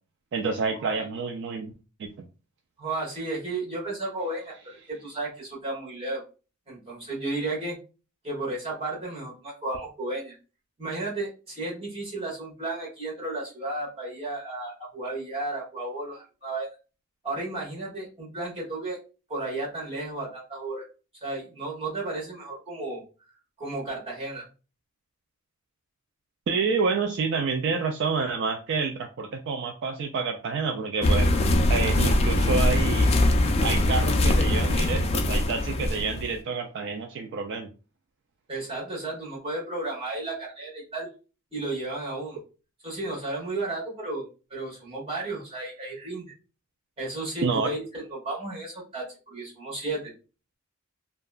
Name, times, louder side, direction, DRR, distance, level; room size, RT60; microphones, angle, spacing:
voice 1, 0.3-1.7 2.0-2.1 26.5-31.3 31.7-33.1 33.6-37.7 47.4-47.7, right 4 dB, 55° right, 5 dB, 0.3 m, -28 dB
voice 2, 2.8-6.2 6.7-7.8 8.2-10.4 10.8-16.7 17.2-19.0 19.3-20.8 21.2-23.0 23.6-24.5 38.5-41.1 41.5-42.4 42.8-44.2 44.5-46.3 47.0-50.1, right 2 dB, 30° right, -5 dB, 1.2 m, -33 dB
sound 1, 31.0-36.3, left 1 dB, 30° left, 0.3 m, -22 dB
2.7 x 2.2 x 2.3 m, 0.33 s
head